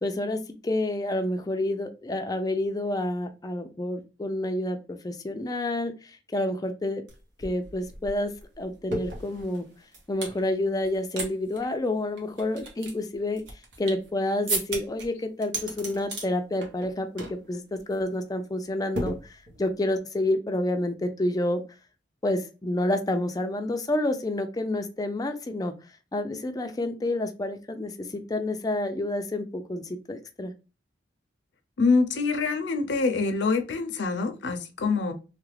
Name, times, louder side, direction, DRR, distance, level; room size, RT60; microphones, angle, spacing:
voice 1, 0.0-5.9 6.3-7.0 7.4-9.7 10.1-13.4 13.8-19.1 19.6-21.6 22.2-25.7 26.1-29.8 30.1-30.5, left 1 dB, 20° left, 0.4 m, -29 dB
sound 1, 7.1-7.2 7.4-10.4 10.8-11.3 11.5-11.6 12.2-14.1 14.5-15.0 15.4-16.3 16.6-16.9 17.2-17.4 17.7-18.0 18.9-19.7, right 2 dB, 75° right, 1.1 m, -34 dB
voice 2, 31.8-35.1, left 4 dB, 70° left, 0.5 m, -25 dB
3.2 x 2.4 x 3.2 m
head